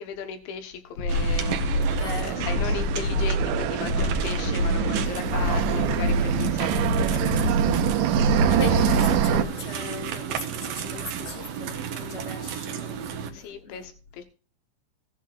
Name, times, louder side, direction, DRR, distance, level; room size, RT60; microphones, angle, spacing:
voice 1, 0.0-8.8 9.6-10.1 13.3-14.2, left 8 dB, 80° left, 3.7 m, -37 dB
sound 1, 1.0-9.4, left 1 dB, 65° left, 2.3 m, -26 dB
sound 2, 1.1-13.3, right 8 dB, 70° right, 2.3 m, -33 dB
voice 2, 1.9-2.5 4.9-5.3 8.3-13.8, left 4 dB, 35° left, 2.1 m, -37 dB
sound 3, 1.9-9.4, right 10 dB, 85° right, 3.1 m, -26 dB
16.5 x 10.0 x 2.6 m
omnidirectional pair, 5.3 m